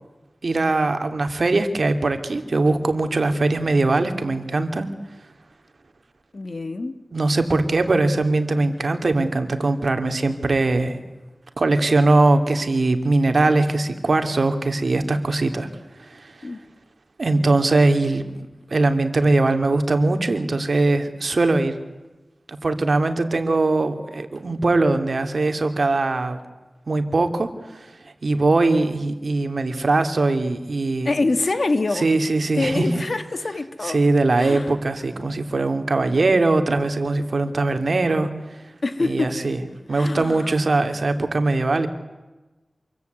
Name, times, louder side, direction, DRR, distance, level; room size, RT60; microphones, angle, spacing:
voice 1, 0.4-4.9 7.1-11.0 11.6-15.7 16.0-16.5 17.2-18.2 18.7-21.8 22.5-26.4 26.9-27.9 28.2-31.1 31.9-32.8 33.8-38.3 39.0-39.6 39.9-41.9, right 2 dB, 70° right, 2.8 m, -21 dB
voice 2, 6.3-7.0 16.4-16.6 31.0-32.1 32.5-34.0 34.4-34.8 38.8-39.4 39.9-40.5, left 3 dB, 60° left, 2.3 m, -25 dB
27.5 x 22.5 x 9.5 m
wide cardioid pair, 80°, 0 cm